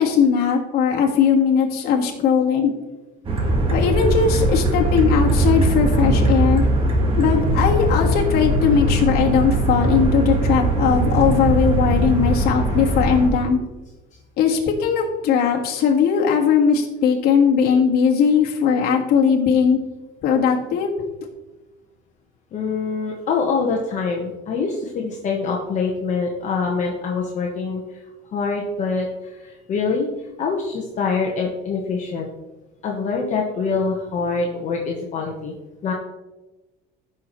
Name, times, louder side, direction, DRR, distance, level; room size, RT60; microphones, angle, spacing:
voice 1, 0.0-2.7 3.7-6.7 7.2-13.6 14.4-19.8 20.2-20.9, left 6 dB, 60° left, 0 dB, 1.7 m, -19 dB
sound 1, 3.2-13.3, right 1 dB, 30° right, 1.6 m, -20 dB
voice 2, 22.5-27.8 28.3-30.1 30.4-32.3 32.8-35.5 35.8-35.9, left 4 dB, 40° left, -1 dB, 1.3 m, -24 dB
15.0 x 5.8 x 3.1 m, 1.1 s
cardioid pair, 140°, 18 cm